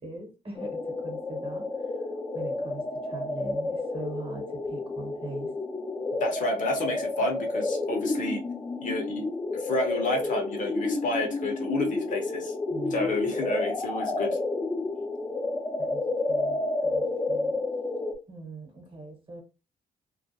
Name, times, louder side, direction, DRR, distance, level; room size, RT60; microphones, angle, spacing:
voice 1, 0.0-2.1 2.3-5.5 12.7-13.1 15.8-16.0 16.3-17.5 18.3-19.4, right 3 dB, 35° right, 3 dB, 1.0 m, -41 dB
sound 1, 0.6-18.2, left 2 dB, 15° left, 0.4 m, -30 dB
voice 2, 6.2-8.4 8.8-9.2 9.5-12.5 12.9-14.4, left 2 dB, 55° left, 3 dB, 0.8 m, -30 dB
2.3 x 2.1 x 2.7 m, 0.32 s
supercardioid pair, 70°, 16 cm